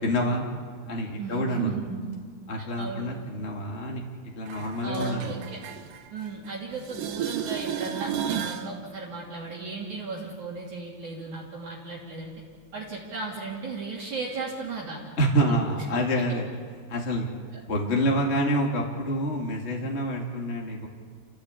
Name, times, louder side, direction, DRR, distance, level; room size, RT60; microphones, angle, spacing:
voice 1, 0.0-0.5 0.9-1.7 2.5-4.0 4.3-5.3 15.2-16.4 16.9-17.3 17.7-20.9, equal, 20° left, -1 dB, 2.1 m, -27 dB
voice 2, 1.2-2.0 2.6-3.1 4.8-5.6 6.1-12.3 12.7-15.0 15.5-15.6 16.3-16.4, right 4 dB, 50° right, -3 dB, 4.0 m, -35 dB
sound 1, 4.5-6.5 6.8-8.7 14.4-14.5, right 9 dB, 65° right, 2.3 m, -33 dB
29.5 x 16.0 x 8.4 m, 2.1 s
omnidirectional pair, 4.7 m